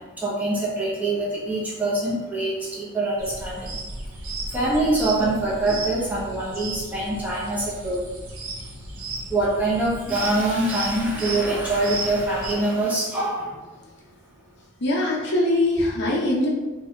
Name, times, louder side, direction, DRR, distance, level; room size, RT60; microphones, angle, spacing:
voice 1, 0.0-3.8 4.5-8.0 9.3-13.6, right 2 dB, 5° right, -6 dB, 0.6 m, -24 dB
sound 1, 3.2-12.5, right 2 dB, 70° right, 0.6 m, -35 dB
voice 2, 14.8-16.5, left 1 dB, 50° left, -3 dB, 0.6 m, -22 dB
2.7 x 2.2 x 3.4 m, 1.2 s
head